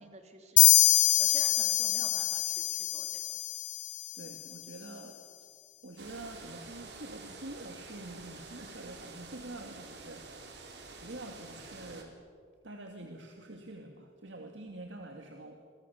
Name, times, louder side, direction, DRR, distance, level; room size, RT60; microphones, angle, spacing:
voice 1, 0.0-3.4, right 2 dB, 35° right, 6 dB, 2.7 m, -50 dB
sound 1, 0.6-4.2, left 17 dB, 70° left, 0.5 m, -25 dB
voice 2, 4.1-5.2 5.8-10.3 11.0-12.2 12.6-15.6, right 1 dB, 80° right, 3 dB, 2.2 m, -46 dB
sound 2, 6.0-12.0, right 3 dB, 65° right, 3.9 m, -48 dB
28.5 x 23.5 x 7.1 m, 2.2 s
head